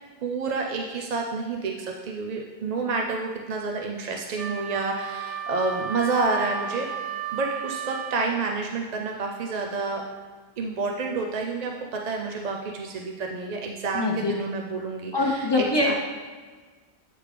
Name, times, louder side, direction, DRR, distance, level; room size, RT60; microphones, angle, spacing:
voice 1, 0.2-6.9 7.3-10.0 10.6-15.9, right 3 dB, 50° right, 1 dB, 0.5 m, -29 dB
Wind instrument woodwind instrument, 4.4-8.3, right 8 dB, 70° right, 1.0 m, -33 dB
voice 2, 13.9-14.3 15.1-15.9, left 2 dB, 25° left, -2 dB, 0.8 m, -23 dB
8.6 x 4.9 x 3.3 m, 1.4 s
omnidirectional pair, 1.0 m